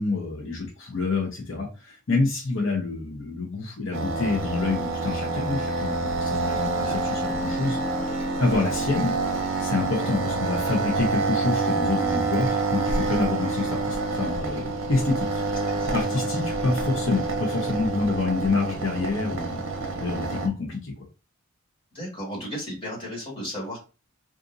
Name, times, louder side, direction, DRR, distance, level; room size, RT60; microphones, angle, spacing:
voice 1, 0.0-9.1 9.6-15.4 15.9-20.9, left 3 dB, 70° left, -2 dB, 0.8 m, -27 dB
sound 1, 3.9-20.5, right 3 dB, 65° right, 0.7 m, -27 dB
voice 2, 15.7-16.3 18.2-18.3 21.9-23.8, equal, 25° left, -5 dB, 1.8 m, -35 dB
3.8 x 2.6 x 2.6 m, 0.31 s
head